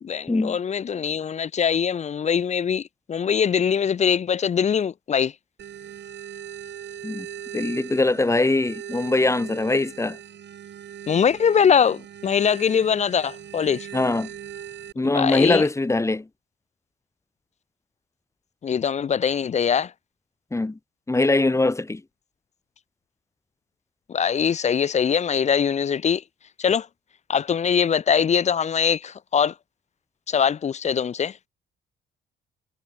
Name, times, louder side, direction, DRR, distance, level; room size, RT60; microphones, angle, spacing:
voice 1, 0.0-5.3 11.1-13.9 15.1-15.6 18.6-19.9 24.1-26.2 26.6-26.9 27.3-29.5 30.3-31.4, left 7 dB, 35° left, 0.5 m, -22 dB
sound 1, 5.6-14.9, right 9 dB, 65° right, 4.2 m, -39 dB
voice 2, 7.5-10.2 13.9-14.3 15.0-16.3 20.5-20.8 21.1-22.0, left 2 dB, 15° left, 1.7 m, -22 dB
cardioid pair, 90°, 20 cm